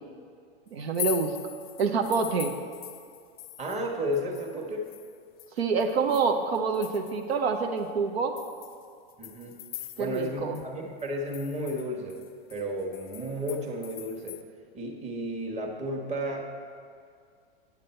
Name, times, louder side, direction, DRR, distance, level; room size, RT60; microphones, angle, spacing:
voice 1, 0.7-1.3 1.8-2.5 5.6-8.3 10.0-10.6, right 5 dB, 85° right, 5 dB, 0.8 m, -27 dB
sound 1, 0.8-3.9 4.1-7.3 7.8-7.9 8.4-10.3 10.5-10.6 11.0-14.4, left 13 dB, 30° left, 0.5 m, -41 dB
voice 2, 3.6-4.9 9.2-9.5 10.0-12.2 12.5-14.4 14.7-16.4, equal, 20° right, 0 dB, 1.3 m, -33 dB
9.1 x 7.5 x 4.3 m, 2.2 s
hypercardioid pair, 115°, 31 cm